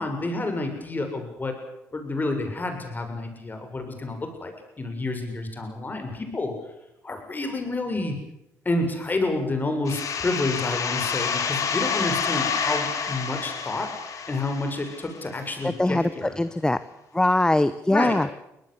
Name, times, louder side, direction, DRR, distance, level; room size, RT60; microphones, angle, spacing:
voice 1, 0.0-1.5 1.9-6.5 7.0-8.2 8.6-13.9 14.3-16.4 17.9-18.2, left 2 dB, 30° left, 5 dB, 6.8 m, -29 dB
sound 1, 9.9-15.4, left 6 dB, 60° left, 3.8 m, -28 dB
voice 2, 15.6-16.1 16.4-16.8 17.1-18.3, left 1 dB, 10° left, 14 dB, 0.9 m, -22 dB
23.5 x 18.5 x 8.2 m, 0.86 s
supercardioid pair, 70°, 6 cm